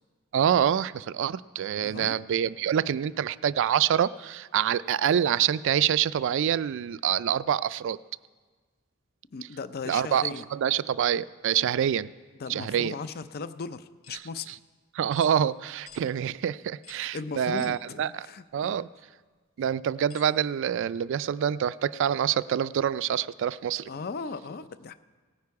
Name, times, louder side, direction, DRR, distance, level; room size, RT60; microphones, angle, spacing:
voice 1, 0.3-8.0 9.9-12.1 12.5-13.0 14.5-14.6 14.9-18.3 18.5-18.9 19.6-23.9, right 9 dB, 60° right, 18 dB, 0.3 m, -26 dB
voice 2, 1.8-2.2 9.3-10.5 12.4-14.5 17.1-18.8 23.9-24.9, left 4 dB, 50° left, 14 dB, 0.5 m, -37 dB
sound 1, 14.0-14.3 15.1-15.3 15.9-16.1 16.8-17.1 17.6-17.8 18.6-18.7 20.1-20.3, left 10 dB, 90° left, 0.8 m, -49 dB
17.5 x 9.7 x 4.7 m, 1.4 s
head